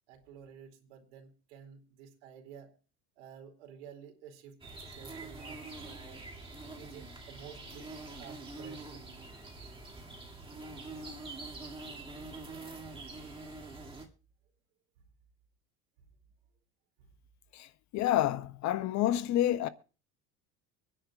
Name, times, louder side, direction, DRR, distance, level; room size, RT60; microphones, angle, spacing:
voice 1, 0.1-2.7 3.2-6.2 6.7-7.9 8.2-9.0, right 7 dB, 85° right, 2.8 m, -52 dB
sound 1, 4.6-14.0, right 2 dB, 15° right, 2.2 m, -45 dB
voice 2, 17.9-19.7, left 13 dB, 50° left, 0.7 m, -28 dB
25.0 x 10.0 x 2.4 m
supercardioid pair, 110°, 35 cm